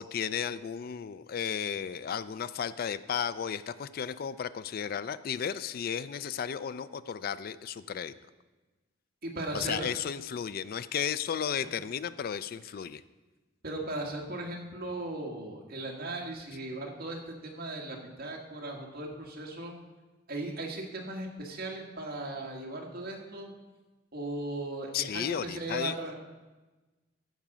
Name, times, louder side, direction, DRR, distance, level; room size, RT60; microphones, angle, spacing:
voice 1, 0.0-8.1 9.5-13.0 24.9-26.0, left 8 dB, 50° left, 15 dB, 0.4 m, -34 dB
voice 2, 9.2-9.9 13.6-19.7 20.3-23.5 24.1-26.2, right 2 dB, 55° right, 0 dB, 1.8 m, -37 dB
14.5 x 5.1 x 6.1 m, 1.2 s
head